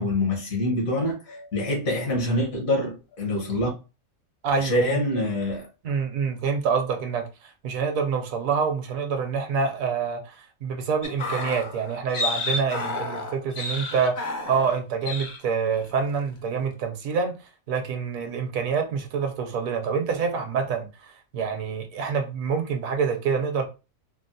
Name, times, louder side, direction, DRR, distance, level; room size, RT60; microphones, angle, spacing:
voice 1, 0.0-3.7 4.6-5.7, left 1 dB, 70° left, 1.6 m, -25 dB
voice 2, 4.4-5.0 5.8-23.7, right 6 dB, 75° right, 1.0 m, -27 dB
sound 1, 11.0-14.8 15.0-15.4 15.7-16.0, left 2 dB, 45° left, 0.5 m, -31 dB
4.2 x 2.0 x 2.6 m
omnidirectional pair, 1.5 m